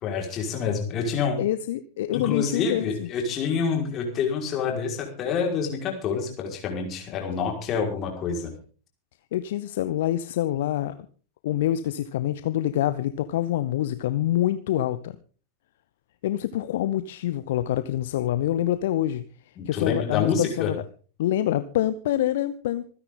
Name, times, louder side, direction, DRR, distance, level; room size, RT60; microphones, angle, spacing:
voice 1, 0.0-1.4 2.1-8.5 19.6-20.7, left 6 dB, 30° left, 2 dB, 5.1 m, -27 dB
voice 2, 1.4-3.1 9.3-11.0 11.4-15.2 16.2-20.8 21.2-22.9, left 12 dB, 55° left, 13 dB, 0.8 m, -26 dB
26.0 x 10.0 x 3.9 m, 0.39 s
figure-of-eight pair, 90°, 0 cm